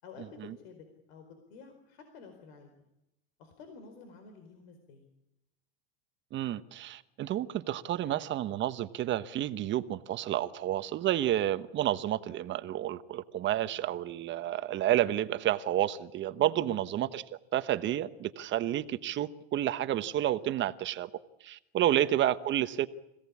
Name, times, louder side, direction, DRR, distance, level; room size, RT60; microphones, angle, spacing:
voice 1, 0.0-2.7 3.4-5.1 16.5-17.0 21.8-22.1, left 5 dB, 70° left, 4.6 m, -51 dB
voice 2, 6.3-17.2 17.5-21.1 21.4-22.9, right 12 dB, 35° right, 1.2 m, -30 dB
26.0 x 17.0 x 8.6 m
supercardioid pair, 125°, 32 cm